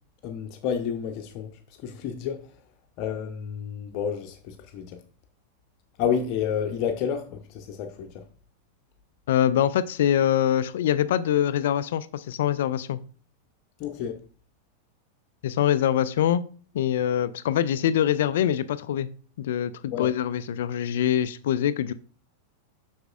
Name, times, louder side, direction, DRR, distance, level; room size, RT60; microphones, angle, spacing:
voice 1, 0.2-1.5 1.8-2.4 3.0-5.0 6.0-8.2 13.8-14.2 19.9-20.1, left 8 dB, 40° left, 0.8 m, -30 dB
voice 2, 9.3-13.0 15.4-16.4 16.7-19.1 19.4-21.9, left 10 dB, 60° left, 0.4 m, -24 dB
7.7 x 6.2 x 2.5 m
figure-of-eight pair, 90°, 0 cm